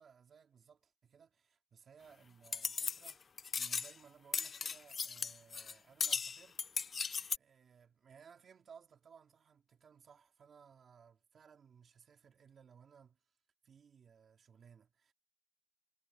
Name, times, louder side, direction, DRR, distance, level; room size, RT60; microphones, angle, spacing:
voice 1, 0.0-3.2 3.5-13.2 13.6-15.1, right 7 dB, 80° right, 3.4 m, -61 dB
sound 1, 2.5-3.1 3.4-3.9 4.3-5.7 6.0-7.4, left 5 dB, 50° left, 0.4 m, -37 dB
wide cardioid pair, 175°, 0 cm